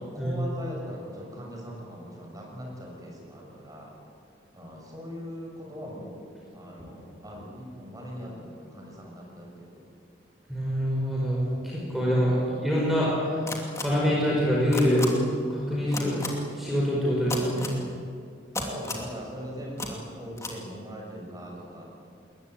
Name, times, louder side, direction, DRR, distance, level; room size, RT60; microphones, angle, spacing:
voice 1, 0.0-3.9 4.5-6.3 6.5-9.9 18.6-21.8, equal, 20° right, -1 dB, 6.5 m, -40 dB
voice 2, 10.5-12.4 12.6-13.4 13.8-15.1 15.5-16.2 16.5-17.7, equal, ahead, -5 dB, 5.3 m, -25 dB
sound 1, 13.5-13.8 14.7-15.1 15.9-16.3 17.3-17.7 18.5-19.1 19.8-19.9 20.4-20.5, left 3 dB, 15° left, 2.6 m, -32 dB
21.0 x 20.5 x 9.2 m, 2.3 s
head